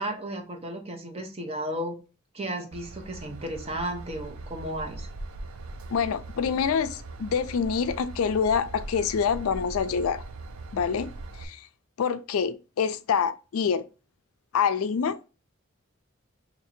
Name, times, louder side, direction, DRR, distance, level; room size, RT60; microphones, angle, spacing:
voice 1, 0.0-1.9 2.3-5.1, right 1 dB, 30° right, 0.7 m, -34 dB
Train / Engine, 2.7-11.4, right 2 dB, 85° right, 0.5 m, -40 dB
voice 2, 5.9-10.2 10.7-11.1 11.4-11.7 12.0-13.8 14.5-15.3, left 6 dB, 80° left, 0.4 m, -26 dB
2.8 x 2.7 x 4.2 m
head